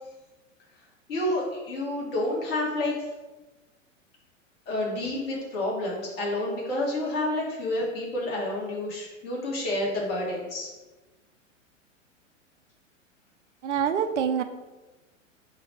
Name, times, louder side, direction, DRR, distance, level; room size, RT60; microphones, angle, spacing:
voice 1, 1.1-3.0 4.7-10.7, left 1 dB, 45° left, -3 dB, 1.5 m, -29 dB
voice 2, 13.6-14.4, right 8 dB, 65° right, 8 dB, 0.5 m, -25 dB
4.5 x 2.3 x 4.5 m, 1.2 s
figure-of-eight pair, 100°, 39 cm